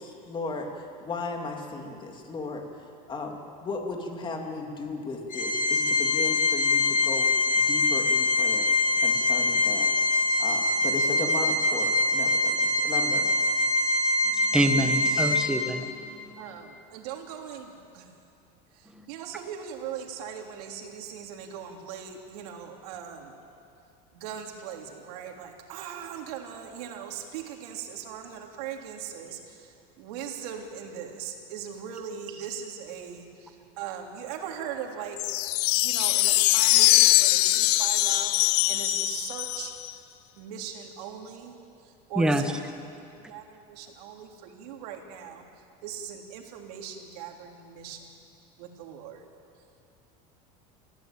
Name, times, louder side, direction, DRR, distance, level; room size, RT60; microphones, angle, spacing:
voice 1, 0.0-2.6 3.1-8.7 9.0-9.9 10.4-13.3, left 3 dB, 25° left, 2 dB, 2.8 m, -36 dB
Organ, 5.3-15.9, left 2 dB, 45° left, 3.0 m, -24 dB
voice 2, 14.5-15.8 42.2-42.4, equal, 5° right, 5 dB, 1.5 m, -24 dB
voice 3, 16.4-18.1 18.7-23.3 24.1-35.2 35.8-39.8 40.4-42.6 42.9-45.4 45.8-48.1 48.6-49.3, right 8 dB, 80° right, 2 dB, 3.4 m, -39 dB
sound 1, 35.2-39.9, left 19 dB, 85° left, 0.6 m, -22 dB
29.0 x 15.5 x 9.0 m, 2.5 s
supercardioid pair, 145°, 20 cm